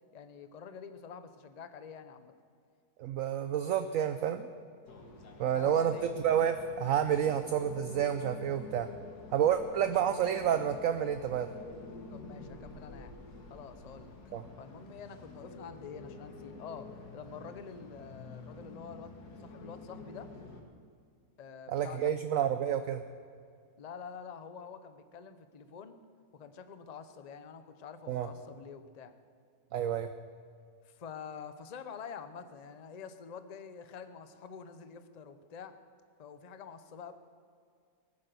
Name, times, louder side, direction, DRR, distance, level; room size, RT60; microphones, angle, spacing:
voice 1, 0.1-2.3 5.4-6.1 12.1-13.1 13.5-14.1 14.6-19.1 19.4-20.3 21.4-22.1 23.8-26.0 26.3-29.1 30.8-35.7 36.2-37.1, left 6 dB, 40° left, 10 dB, 0.6 m, -47 dB
voice 2, 3.0-4.5 5.4-5.9 6.2-8.9 9.3-11.5 14.3-14.5 21.7-23.0 28.1-28.3 29.7-30.1, right 9 dB, 65° right, 9 dB, 0.9 m, -29 dB
sound 1, 4.9-20.6, left 3 dB, 75° left, 2.1 m, -49 dB
18.5 x 10.0 x 6.8 m, 2.2 s
omnidirectional pair, 1.7 m